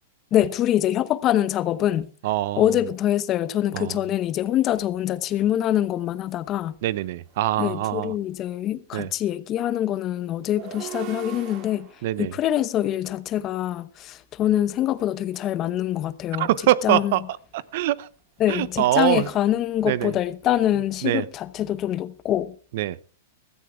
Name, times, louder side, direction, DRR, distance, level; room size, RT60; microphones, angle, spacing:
voice 1, 0.3-2.1 2.6-6.8 7.6-11.9 12.2-16.5 16.8-17.1 18.4-22.5, left 12 dB, 30° left, 0.9 m, -24 dB
voice 2, 2.2-2.7 3.7-4.0 6.8-8.1 8.9-9.1 12.0-12.3 16.4-17.2 17.5-18.1 18.5-19.3 19.9-20.1 21.0-21.3 22.7-23.0, right 14 dB, 60° right, 0.6 m, -23 dB
sound 1, 6.0-6.1 6.5-8.5 10.3-13.6 14.9-15.6 17.1-20.5, right 11 dB, 45° right, 2.5 m, -44 dB
15.5 x 14.0 x 3.6 m
hypercardioid pair, 130°, 0 cm